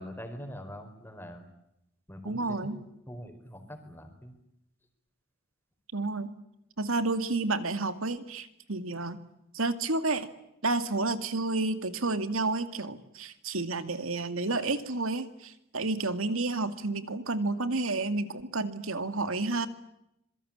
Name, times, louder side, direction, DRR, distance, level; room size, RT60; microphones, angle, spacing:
voice 1, 0.0-1.5 2.1-4.3, equal, 10° left, 6 dB, 4.6 m, -43 dB
voice 2, 2.2-2.8 5.9-6.3 6.8-9.2 9.5-10.3 10.6-19.7, right 3 dB, 80° right, 10 dB, 2.3 m, -30 dB
26.5 x 23.0 x 8.8 m, 0.82 s
head